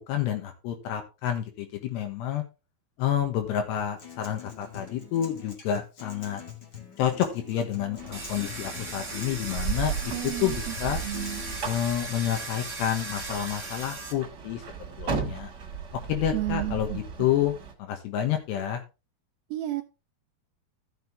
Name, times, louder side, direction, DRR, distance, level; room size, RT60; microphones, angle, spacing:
voice 1, 0.1-2.4 3.0-6.4 7.0-10.1 10.4-11.0 11.6-14.6 15.0-15.5 16.1-17.5 17.8-18.8, left 10 dB, 85° left, 4 dB, 3.5 m, -29 dB
Acoustic guitar, 3.8-11.8, left 8 dB, 40° left, 1.5 m, -44 dB
sound 1, 8.0-17.7, right 6 dB, 35° right, 1.5 m, -36 dB
Domestic sounds home sounds, 8.1-14.1, right 2 dB, 10° right, 1.9 m, -38 dB
voice 2, 10.1-10.8 11.0-11.4 16.3-17.0 19.5-19.8, right 16 dB, 80° right, 7 dB, 2.4 m, -32 dB
14.0 x 6.7 x 3.4 m, 0.28 s
omnidirectional pair, 4.8 m